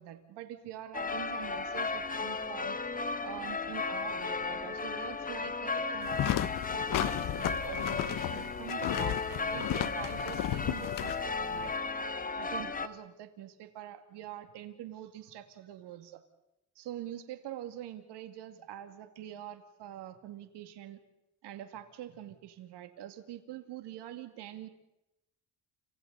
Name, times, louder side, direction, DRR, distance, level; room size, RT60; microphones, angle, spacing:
voice 1, 0.0-2.8 3.2-11.7 12.4-16.2 16.8-21.0 21.4-24.7, right 12 dB, 80° right, 8 dB, 2.3 m, -45 dB
sound 1, 0.9-12.9, left 4 dB, 20° left, 1.3 m, -35 dB
sound 2, 6.0-11.8, left 13 dB, 50° left, 0.7 m, -34 dB
30.0 x 28.0 x 4.1 m, 0.88 s
cardioid pair, 125°, 41 cm